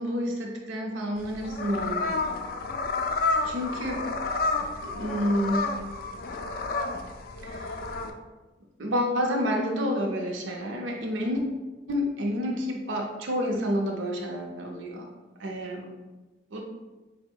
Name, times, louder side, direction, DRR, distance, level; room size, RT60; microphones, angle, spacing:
voice 1, 0.0-2.2 3.4-4.1 4.8-5.7 7.4-7.8 8.8-11.4 11.9-15.1 15.4-15.8 16.5-16.6, equal, 90° right, 0 dB, 0.6 m, -29 dB
sound 1, 1.2-8.1, left 3 dB, 50° left, 0.3 m, -30 dB
4.0 x 2.1 x 4.4 m, 1.2 s
head